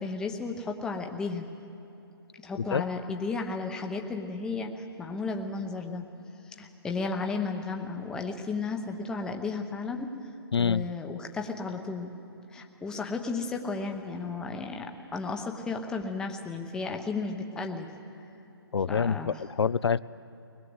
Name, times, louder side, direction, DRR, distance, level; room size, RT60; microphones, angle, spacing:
voice 1, 0.0-1.5 2.4-6.0 6.6-10.1 10.6-12.1 12.5-17.9 18.9-19.3, left 4 dB, 5° left, 3 dB, 0.9 m, -34 dB
voice 2, 10.5-10.9 18.7-20.0, left 6 dB, 90° left, 17 dB, 0.5 m, -26 dB
22.0 x 20.5 x 8.0 m, 3.0 s
hypercardioid pair, 160°, 13 cm